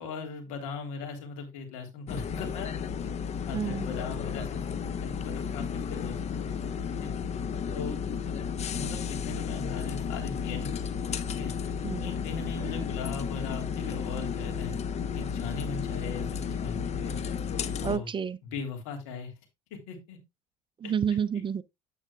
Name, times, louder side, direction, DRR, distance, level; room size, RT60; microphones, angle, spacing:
voice 1, 0.0-2.7 3.0-3.1 3.5-4.7 5.0-6.2 6.9-7.1 7.7-8.0 8.7-10.7 11.3-11.5 12.0-14.8 15.1-17.2 17.8-18.1 18.4-19.3 19.7-20.2 20.8-20.9, left 4 dB, 75° left, 3.2 m, -39 dB
sound 1, 2.1-18.0, left 7 dB, 35° left, 0.7 m, -33 dB
voice 2, 3.5-3.9 11.8-12.1 17.8-18.4 20.8-21.6, right 7 dB, 25° right, 0.5 m, -29 dB
9.1 x 8.4 x 2.3 m
supercardioid pair, 85°, 18 cm